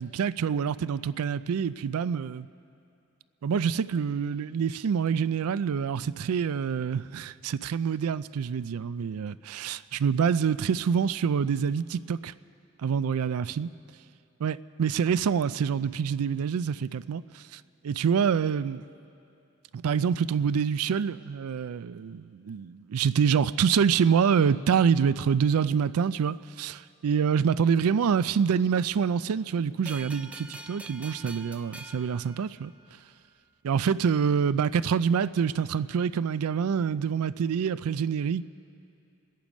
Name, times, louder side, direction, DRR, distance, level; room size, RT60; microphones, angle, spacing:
voice 1, 0.0-2.5 3.4-12.3 12.8-13.7 14.4-18.8 19.7-32.7 33.6-38.4, right 7 dB, 85° right, 0.4 m, -26 dB
sound 1, 29.9-33.1, right 2 dB, 5° right, 0.4 m, -45 dB
26.5 x 10.5 x 5.2 m
head